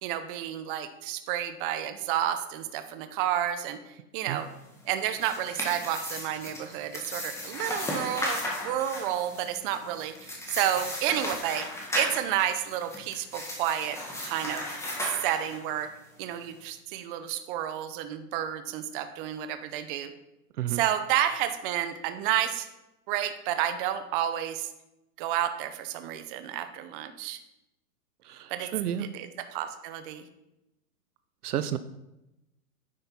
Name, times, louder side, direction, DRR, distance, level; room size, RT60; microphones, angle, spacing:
voice 1, 0.0-3.8 4.1-4.5 4.8-11.7 11.9-14.6 15.2-15.9 16.2-20.1 20.7-22.7 23.1-24.7 25.2-27.4 28.5-28.7 29.0-30.2, right 11 dB, 35° right, 9 dB, 0.7 m, -30 dB
sound 1, 4.9-15.8, left 1 dB, 5° left, 1.5 m, -36 dB
voice 2, 28.2-29.1 31.4-31.8, right 11 dB, 70° right, 13 dB, 0.7 m, -31 dB
10.0 x 5.5 x 4.3 m, 0.92 s
hypercardioid pair, 130°, 48 cm